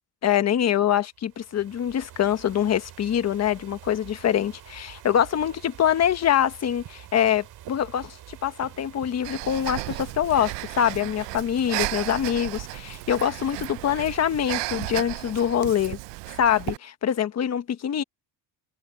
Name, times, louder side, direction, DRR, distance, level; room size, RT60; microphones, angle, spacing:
voice 1, 0.2-16.0 16.4-18.0, left 9 dB, 40° left, 1.3 m, -24 dB
sound 1, 1.1-15.0, right 13 dB, 60° right, 2.7 m, -47 dB
Breathing, 9.2-16.8, right 22 dB, 80° right, 0.7 m, -34 dB
open air
cardioid pair, 140°, 42 cm